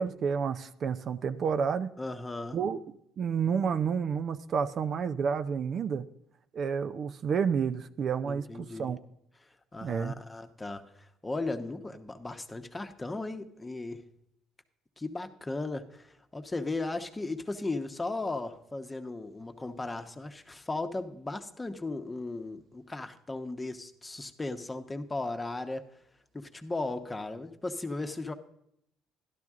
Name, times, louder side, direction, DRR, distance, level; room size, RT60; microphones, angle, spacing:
voice 1, 0.0-1.9 2.5-2.8 3.2-6.1 6.5-9.0 9.8-10.1, right 6 dB, 55° right, 10 dB, 0.5 m, -30 dB
voice 2, 2.0-2.6 8.2-8.9 9.4-14.0 15.0-25.9 26.3-28.3, left 2 dB, 20° left, 8 dB, 0.9 m, -36 dB
12.0 x 11.5 x 3.6 m, 0.77 s
supercardioid pair, 80°, 0 cm